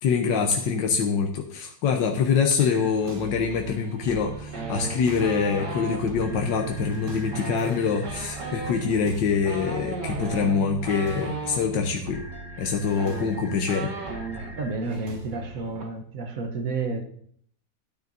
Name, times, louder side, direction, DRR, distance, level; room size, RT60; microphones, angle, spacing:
voice 1, 0.0-12.2 12.6-13.9, left 5 dB, 90° left, 1.5 m, -25 dB
sound 1, 2.6-2.9 6.2-8.8 12.1-14.7, left 1 dB, 45° left, 2.3 m, -46 dB
sound 2, 2.9-15.8, right 4 dB, 35° right, 1.1 m, -40 dB
sound 3, 4.5-6.0 7.2-11.6 12.6-12.7 12.9-14.5 14.8-15.1 15.3-15.8, right 3 dB, 70° right, 2.3 m, -36 dB
voice 2, 14.6-17.0, right 3 dB, 55° right, 1.3 m, -30 dB
13.0 x 9.1 x 2.6 m
omnidirectional pair, 1.9 m